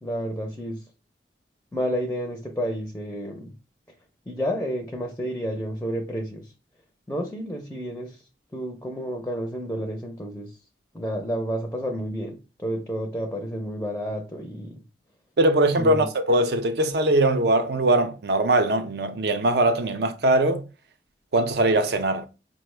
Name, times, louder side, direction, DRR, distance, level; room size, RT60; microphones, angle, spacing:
voice 1, 0.0-0.8 1.7-3.5 4.3-6.5 7.1-8.2 8.5-10.6 10.9-14.8 15.7-16.1, equal, 10° left, 0.5 m, -30 dB
voice 2, 15.4-20.7 21.3-22.3, right 2 dB, 60° right, 0.5 m, -21 dB
5.0 x 2.1 x 3.2 m
head